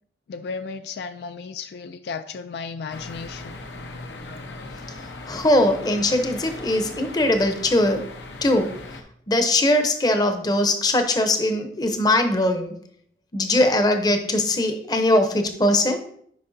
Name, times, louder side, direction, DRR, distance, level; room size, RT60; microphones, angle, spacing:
voice 1, 0.3-3.6, left 5 dB, 70° left, 10 dB, 0.3 m, -34 dB
sound 1, 2.9-9.0, left 2 dB, 85° left, 0.8 m, -38 dB
voice 2, 4.9-8.0 8.4-8.7 9.3-12.7 13.3-16.0, left 1 dB, 20° left, 7 dB, 0.7 m, -21 dB
9.4 x 5.3 x 2.6 m, 0.65 s
head